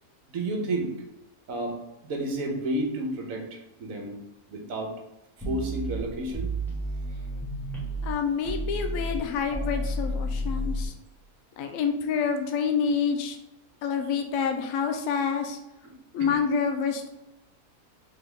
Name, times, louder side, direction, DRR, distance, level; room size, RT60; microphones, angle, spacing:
voice 1, 0.3-0.9 1.5-1.8 2.0-4.2 4.5-4.9 5.4-6.5 15.8-15.9 16.2-16.5, right 1 dB, 65° right, 2 dB, 1.3 m, -31 dB
sound 1, 5.4-8.1 8.4-10.9, equal, ahead, 1.4 m, -31 dB
voice 2, 8.0-10.9 11.6-13.4 13.8-15.6 16.1-17.1, left 6 dB, 70° left, 5 dB, 0.9 m, -27 dB
3.9 x 3.9 x 3.4 m, 0.90 s
omnidirectional pair, 1.6 m